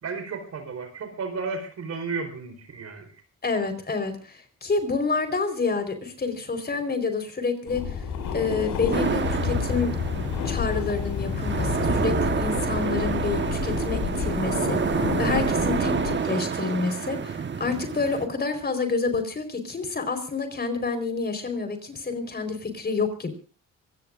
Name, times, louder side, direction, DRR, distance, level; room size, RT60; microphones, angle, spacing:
voice 1, 0.0-3.1, right 4 dB, 60° right, 8 dB, 4.5 m, -33 dB
voice 2, 3.4-7.9 8.3-9.9 10.4-23.3, left 4 dB, 30° left, 8 dB, 4.5 m, -28 dB
sound 1, 7.7-16.2, left 6 dB, 85° left, 5.7 m, -30 dB
sound 2, 8.9-18.3, right 6 dB, 40° right, 1.4 m, -28 dB
24.5 x 18.5 x 2.6 m, 0.37 s
cardioid pair, 90°, 30 cm